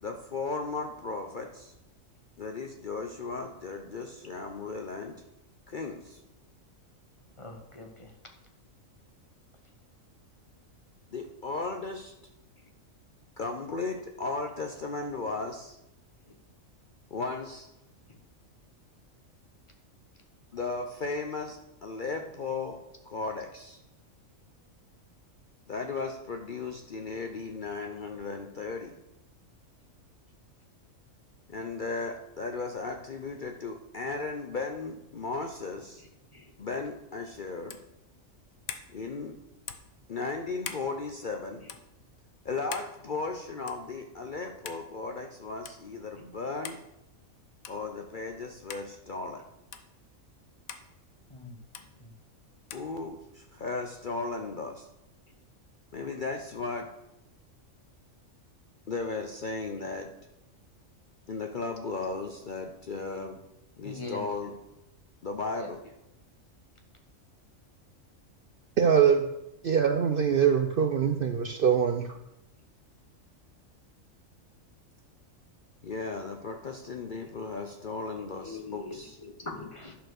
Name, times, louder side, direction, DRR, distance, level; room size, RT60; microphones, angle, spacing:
voice 1, 0.0-1.7 2.4-5.2 5.7-6.2 11.1-12.1 13.4-15.8 17.1-17.7 20.5-22.8 23.1-23.8 25.7-28.9 31.5-36.1 36.6-37.8 38.9-39.4 40.1-41.6 42.4-46.8 47.7-49.4 52.7-54.9 55.9-56.9 58.9-60.1 61.3-63.4 63.8-64.6 65.2-65.8 75.8-79.2, left 3 dB, 50° left, 4 dB, 0.7 m, -36 dB
voice 2, 7.4-8.1 36.3-36.4 51.3-51.5 63.8-64.2 65.6-65.7 78.4-79.0 79.2-79.9, left 3 dB, 25° left, 3 dB, 1.1 m, -41 dB
sound 1, 37.7-37.9 38.7-38.9 39.7-39.9 40.6-40.9 41.7-41.8 42.7-42.9 43.7-43.9 44.7-44.8 45.7-45.8 46.6-46.9 47.6-47.9 48.7-48.9 49.7-49.9 50.7-50.9 51.7-51.9 52.7-52.9, left 8 dB, 85° left, 1.2 m, -41 dB
voice 3, 68.8-69.3 69.6-72.1, right 7 dB, 55° right, 7 dB, 0.6 m, -23 dB
11.5 x 4.4 x 6.4 m, 0.88 s
omnidirectional pair, 1.4 m